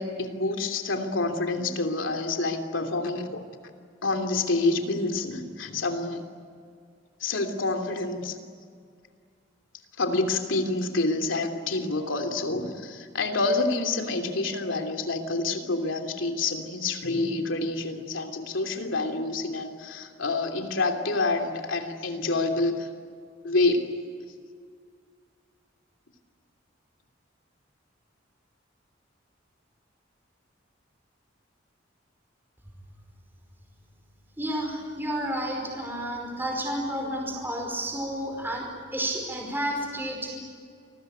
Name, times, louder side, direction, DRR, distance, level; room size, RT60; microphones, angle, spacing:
voice 1, 0.0-3.4 4.0-6.2 7.2-8.4 10.0-22.9 23.4-24.0, left 3 dB, 90° left, 5 dB, 3.0 m, -27 dB
voice 2, 34.4-40.3, right 1 dB, 10° right, 0 dB, 5.1 m, -31 dB
28.5 x 20.5 x 9.2 m, 2.1 s
head